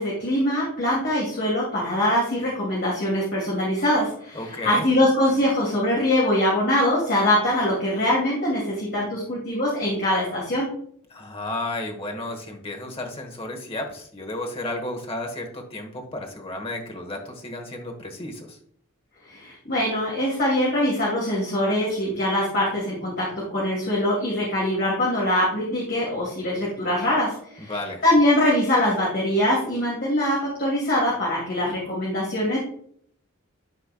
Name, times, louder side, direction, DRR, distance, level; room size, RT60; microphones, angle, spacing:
voice 1, 0.0-10.7 19.2-23.3 23.5-27.7 28.0-32.6, left 1 dB, 50° left, -5 dB, 2.5 m, -23 dB
voice 2, 4.3-4.9 11.1-18.6 27.6-28.0, left 2 dB, 25° left, 3 dB, 1.3 m, -33 dB
12.0 x 4.5 x 2.3 m, 0.64 s
head